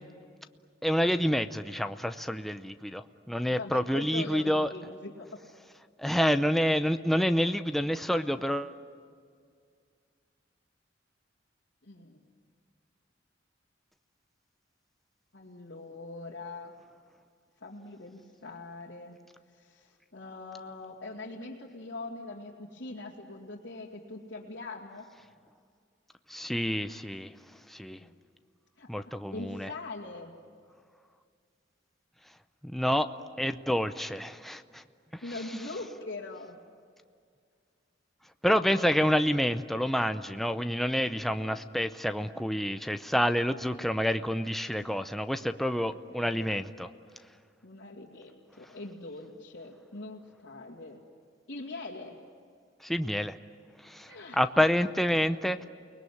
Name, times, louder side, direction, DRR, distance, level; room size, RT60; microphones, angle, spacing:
voice 1, 0.8-4.7 6.0-8.8 26.3-27.3 27.7-28.0 28.9-29.7 32.6-33.1 33.4-34.8 35.1-35.2 38.4-46.9 52.8-53.4 53.8-55.6, equal, ahead, 8 dB, 0.6 m, -28 dB
voice 2, 3.5-5.4 11.8-12.2 15.3-16.7 17.6-19.2 19.5-25.0 27.9-28.2 28.8-30.4 35.2-36.6 45.7-46.6 47.6-51.0 51.5-52.2 54.1-54.5 54.9-55.0, left 2 dB, 75° left, -5 dB, 2.5 m, -42 dB
29.5 x 20.5 x 9.5 m, 2.1 s
head